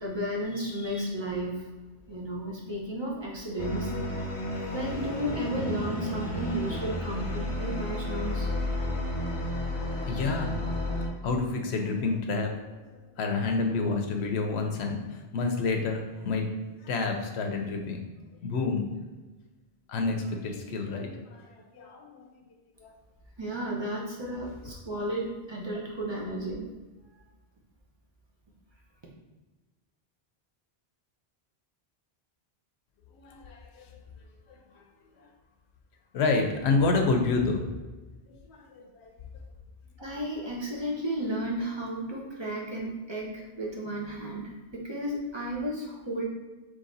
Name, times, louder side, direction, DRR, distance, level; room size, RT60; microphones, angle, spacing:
voice 1, 0.0-1.6 2.1-3.9 4.2-4.3 4.7-8.5 23.4-26.6 40.0-46.2, right 1 dB, 30° right, -3 dB, 0.8 m, -33 dB
sound 1, 3.6-11.1, left 1 dB, 35° left, 0.7 m, -32 dB
voice 2, 10.0-10.6 11.2-16.5 16.8-18.0 18.4-18.8 19.9-22.4 22.8-22.9 33.2-34.0 34.5-34.8 35.2-35.3 36.1-37.6 38.3-39.1, left 3 dB, 85° left, 4 dB, 0.9 m, -29 dB
3.9 x 3.2 x 3.9 m, 1.2 s
omnidirectional pair, 1.1 m